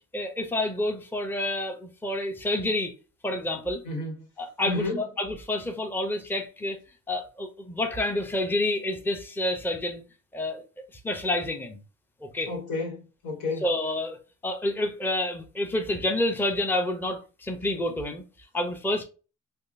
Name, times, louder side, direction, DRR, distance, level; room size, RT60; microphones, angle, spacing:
voice 1, 0.1-2.9 3.2-3.8 4.4-6.8 7.1-10.0 10.3-10.6 11.0-11.8 12.2-12.5 13.6-14.2 14.4-18.2 18.5-19.0, left 1 dB, 5° left, 0.6 m, -28 dB
voice 2, 4.6-5.0 12.5-13.7, left 3 dB, 80° left, 1.5 m, -31 dB
3.5 x 2.3 x 2.6 m
cardioid pair, 90°, 30 cm